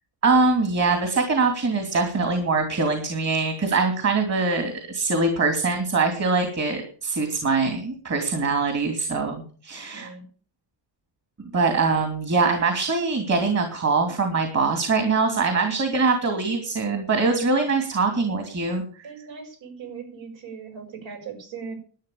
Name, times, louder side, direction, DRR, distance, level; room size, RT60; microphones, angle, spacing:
voice 1, 0.2-10.1 11.4-18.8, right 4 dB, 35° right, 6 dB, 2.8 m, -23 dB
voice 2, 9.9-10.2 19.0-21.7, right 6 dB, 70° right, 2 dB, 6.2 m, -39 dB
12.0 x 9.4 x 8.5 m, 0.43 s
cardioid pair, 140°, 47 cm